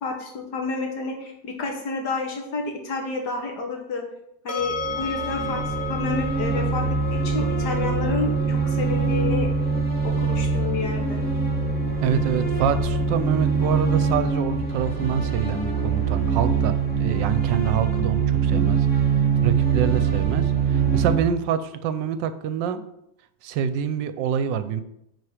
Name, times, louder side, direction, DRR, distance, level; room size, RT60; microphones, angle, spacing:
voice 1, 0.0-4.0 4.4-5.6 5.9-9.5 10.0-11.2, left 4 dB, 65° left, 3 dB, 1.8 m, -30 dB
sound 1, 4.5-17.5, left 1 dB, 30° left, 0.7 m, -37 dB
sound 2, 4.6-21.1, right 5 dB, 5° left, 1.9 m, -23 dB
voice 2, 12.0-19.1 19.4-22.8 23.4-24.8, right 8 dB, 80° right, 12 dB, 1.2 m, -26 dB
9.4 x 4.4 x 4.9 m, 0.80 s
omnidirectional pair, 2.0 m